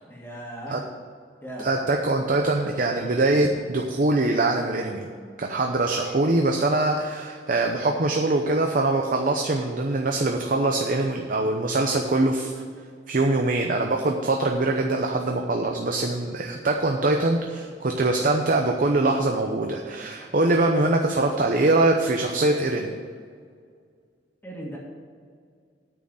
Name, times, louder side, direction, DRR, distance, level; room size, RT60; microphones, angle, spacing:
voice 1, 0.1-0.8 1.4-1.7 20.2-20.3 24.4-24.8, right 1 dB, 10° left, -5 dB, 1.9 m, -37 dB
voice 2, 1.6-5.1 5.4-12.5 13.1-22.9, right 2 dB, 50° right, 3 dB, 0.8 m, -23 dB
9.1 x 6.4 x 7.7 m, 2.1 s
head